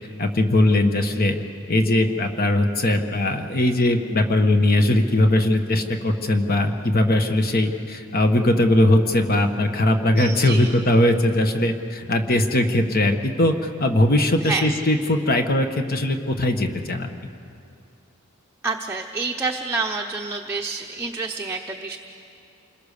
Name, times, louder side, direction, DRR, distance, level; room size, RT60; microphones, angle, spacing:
voice 1, 0.2-1.4 1.7-17.1, left 1 dB, 45° left, 6 dB, 1.4 m, -20 dB
voice 2, 10.2-10.7 14.4-14.7 18.6-22.0, right 4 dB, 10° right, 1 dB, 0.8 m, -28 dB
28.5 x 21.0 x 6.7 m, 2.5 s
head